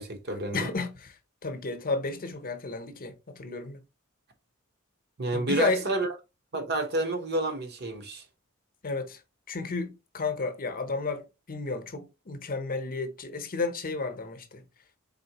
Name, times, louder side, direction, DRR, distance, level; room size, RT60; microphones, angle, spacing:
voice 1, 0.0-0.7 5.2-6.1 6.5-8.2, right 2 dB, 50° right, 1.0 m, -29 dB
voice 2, 0.5-3.8 5.3-5.8 8.8-9.2 9.5-14.6, left 3 dB, 40° left, 0.8 m, -32 dB
4.2 x 3.7 x 2.9 m
head